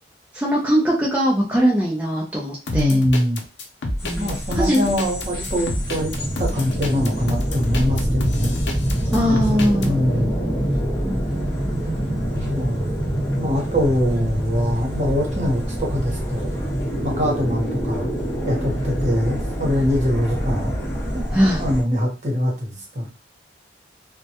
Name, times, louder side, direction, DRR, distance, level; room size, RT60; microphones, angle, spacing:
voice 1, 0.3-3.0 4.0-4.9 9.1-10.0 11.0-12.0 21.3-21.6, equal, 10° right, -4 dB, 0.4 m, -21 dB
sound 1, 2.7-9.9, left 1 dB, 75° left, 0.6 m, -28 dB
voice 2, 2.7-3.4 4.2-8.6 9.2-9.4 9.9-10.5 12.3-12.9 13.3-16.5 17.0-18.1 18.5-20.8 21.6-23.1, left 1 dB, 40° right, -1 dB, 0.9 m, -23 dB
sound 2, 4.0-21.8, equal, 15° left, 1.0 m, -25 dB
2.2 x 2.1 x 2.8 m, 0.32 s
head